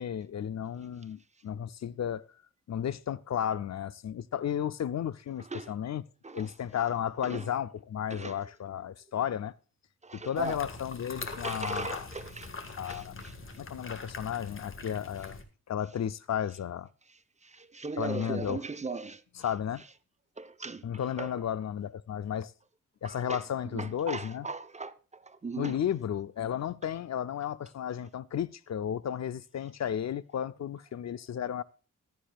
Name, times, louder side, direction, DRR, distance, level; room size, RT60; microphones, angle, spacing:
voice 1, 0.0-2.2 2.7-6.0 6.3-9.5 10.1-12.1 12.8-13.2 13.6-15.4 15.7-16.9 18.0-18.6 19.4-19.8 20.8-22.5 23.0-24.5 25.6-31.6, left 9 dB, 60° left, 0.5 m, -33 dB
voice 2, 5.4-5.7 6.2-6.5 7.2-7.5 8.1-8.4 10.0-10.6 11.3-13.3 17.1-19.2 20.4-20.8 21.2-21.3 23.0-23.4 23.7-25.8, right 3 dB, 20° right, 0.7 m, -39 dB
sound 1, 10.4-15.4, left 3 dB, 40° left, 1.7 m, -43 dB
15.0 x 12.5 x 2.4 m
wide cardioid pair, 145°, 31 cm